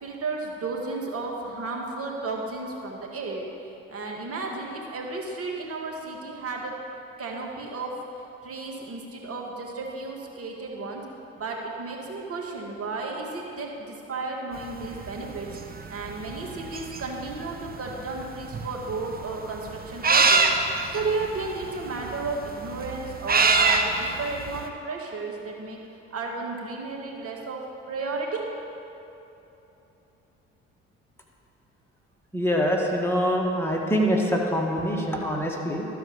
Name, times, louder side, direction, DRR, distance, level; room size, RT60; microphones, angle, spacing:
voice 1, 0.0-3.5 3.9-6.8 7.2-11.0 11.4-15.5 15.9-20.4 20.9-25.8 26.1-28.5, right 3 dB, 50° right, 0 dB, 2.0 m, -33 dB
sound 1, 14.6-24.7, right 4 dB, 30° right, 0.9 m, -25 dB
voice 2, 32.3-35.9, equal, 10° left, -1 dB, 1.9 m, -24 dB
12.5 x 5.0 x 7.0 m, 3.0 s
hypercardioid pair, 60°, 30 cm